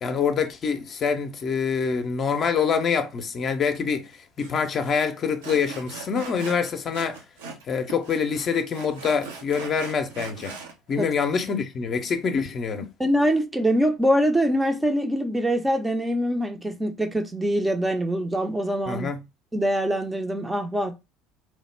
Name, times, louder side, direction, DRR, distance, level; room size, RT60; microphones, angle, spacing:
voice 1, 0.0-7.2 7.7-10.6 10.9-12.9 18.9-19.2, left 6 dB, 40° left, 0.5 m, -25 dB
Sawing, 4.4-4.5 4.8-5.0 5.4-7.6 7.9-10.7, right 5 dB, 75° right, 0.6 m, -40 dB
voice 2, 13.0-19.1 19.5-21.0, equal, 10° right, 0.5 m, -24 dB
3.1 x 2.1 x 3.3 m
figure-of-eight pair, 65°, 0 cm